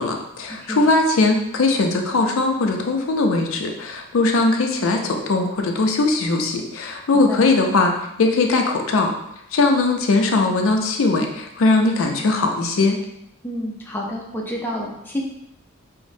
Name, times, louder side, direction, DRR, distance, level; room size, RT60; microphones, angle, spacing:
voice 1, 0.0-7.9 8.2-9.1 9.5-13.0, left 3 dB, 70° left, 3 dB, 0.4 m, -20 dB
voice 2, 7.1-7.4 13.4-15.2, equal, 10° left, -3 dB, 0.4 m, -29 dB
4.9 x 2.0 x 2.6 m, 0.81 s
head